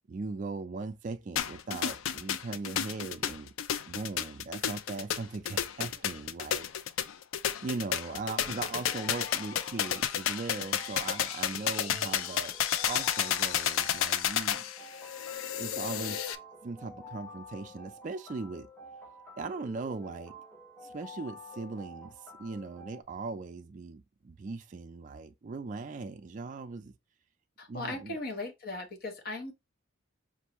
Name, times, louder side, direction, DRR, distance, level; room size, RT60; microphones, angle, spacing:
voice 1, 0.1-3.5 3.9-6.7 7.6-12.5 12.8-14.6 15.6-16.3 16.6-18.7 19.4-20.4 20.8-26.9 27.7-28.2, right 3 dB, 40° right, 0.3 m, -39 dB
sound 1, 1.4-16.4, left 9 dB, 75° left, 0.4 m, -31 dB
sound 2, 8.1-23.0, left 1 dB, 10° left, 0.7 m, -49 dB
voice 2, 27.6-29.5, left 2 dB, 45° left, 0.9 m, -38 dB
5.3 x 2.5 x 2.9 m
head